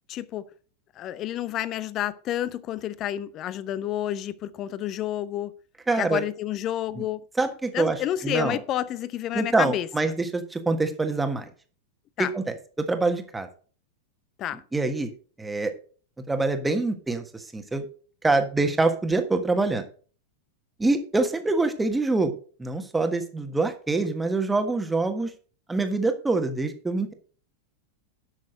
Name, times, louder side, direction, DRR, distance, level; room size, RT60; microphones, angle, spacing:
voice 1, 0.1-0.5 1.0-5.5 6.0-7.2 7.7-9.9 12.2-12.3 14.4-14.6, left 12 dB, 35° left, 0.7 m, -29 dB
voice 2, 5.9-6.2 7.0-7.1 7.4-8.6 9.3-11.4 12.2-13.5 14.7-15.1 15.4-15.7 16.3-17.8 18.2-19.8 20.8-22.3 22.6-25.3 25.7-27.1, right 3 dB, 10° right, 1.4 m, -25 dB
10.5 x 6.2 x 5.2 m
figure-of-eight pair, 90°, 0 cm